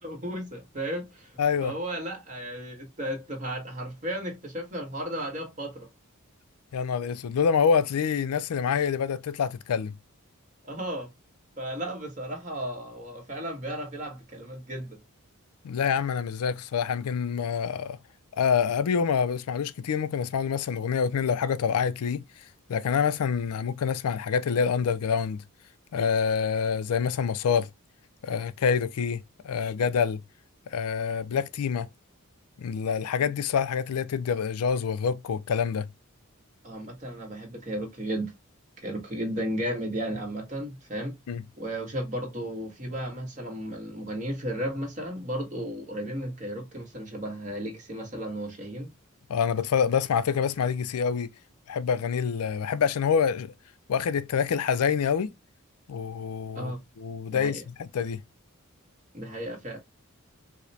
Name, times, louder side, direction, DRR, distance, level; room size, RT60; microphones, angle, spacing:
voice 1, 0.0-1.3 1.6-5.9 10.6-11.1 11.6-15.0 36.6-38.3 38.8-41.1 41.6-48.9 56.5-56.8 57.3-57.6 59.1-59.8, right 1 dB, 35° right, 1.2 m, -34 dB
voice 2, 1.4-1.7 6.7-10.0 15.6-18.0 18.3-25.4 25.9-27.7 28.2-30.2 30.7-31.9 32.6-35.9 41.3-41.4 49.3-51.3 51.7-53.5 53.9-55.3 55.9-58.2, left 6 dB, 90° left, 0.4 m, -26 dB
4.8 x 2.1 x 2.7 m
head